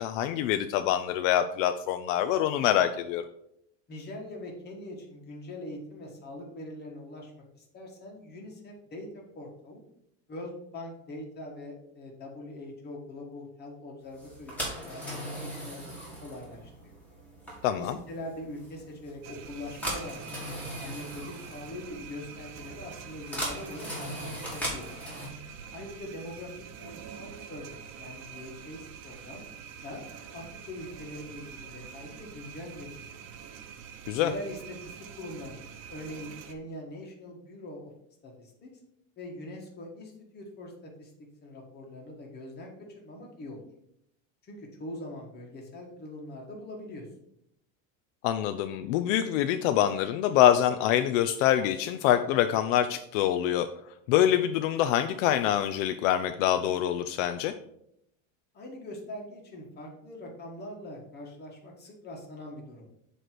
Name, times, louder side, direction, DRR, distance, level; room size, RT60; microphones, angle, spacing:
voice 1, 0.0-3.2 17.6-18.0 34.1-34.3 48.2-53.7 54.1-57.5, left 11 dB, 70° left, 9 dB, 0.5 m, -25 dB
voice 2, 3.9-9.8 10.3-14.5 14.8-15.8 16.2-16.9 17.8-20.3 20.8-24.9 25.7-29.4 29.8-30.0 30.3-33.3 34.2-37.9 38.2-38.7 39.2-41.1 41.4-43.6 44.4-47.1 58.5-62.9, left 1 dB, 25° left, 0 dB, 1.5 m, -42 dB
sound 1, 14.2-25.3, equal, 5° left, 1.8 m, -39 dB
sound 2, 19.2-36.5, right 7 dB, 70° right, 0.9 m, -46 dB
7.7 x 3.2 x 5.9 m, 0.75 s
cardioid pair, 165°, 41 cm